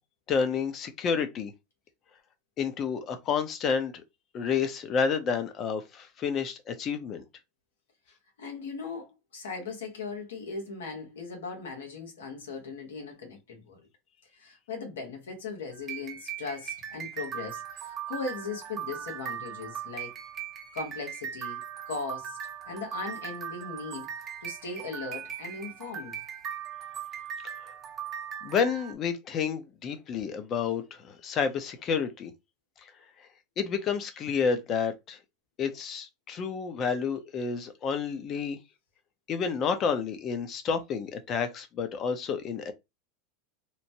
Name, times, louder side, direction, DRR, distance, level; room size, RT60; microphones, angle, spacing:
voice 1, 0.3-1.5 2.6-3.9 4.3-7.2 28.4-32.3 33.6-35.2 35.6-38.6 39.3-42.7, left 6 dB, 40° left, 0.7 m, -30 dB
voice 2, 8.4-13.9 14.3-20.1 20.7-22.4 22.7-24.1 24.4-26.2, left 4 dB, 90° left, 1.2 m, -38 dB
sound 1, 15.7-28.9, right 9 dB, 35° right, 0.7 m, -39 dB
3.0 x 2.1 x 2.7 m
hypercardioid pair, 105°, 0 cm